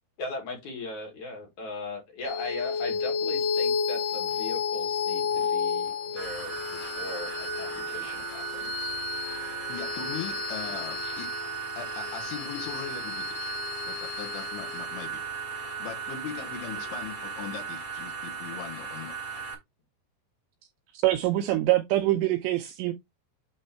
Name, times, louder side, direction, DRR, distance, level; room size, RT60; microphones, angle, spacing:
voice 1, 0.2-9.0, left 3 dB, 55° left, 2.4 m, -38 dB
sound 1, 2.2-17.0, left 6 dB, 90° left, 1.8 m, -33 dB
sound 2, 6.1-19.5, right 7 dB, 50° right, 0.9 m, -36 dB
voice 2, 9.7-11.3 11.8-13.5 13.9-15.2 15.8-19.4, left 9 dB, 75° left, 3.5 m, -40 dB
voice 3, 20.9-22.9, right 15 dB, 80° right, 2.6 m, -24 dB
8.7 x 3.1 x 4.5 m
omnidirectional pair, 5.6 m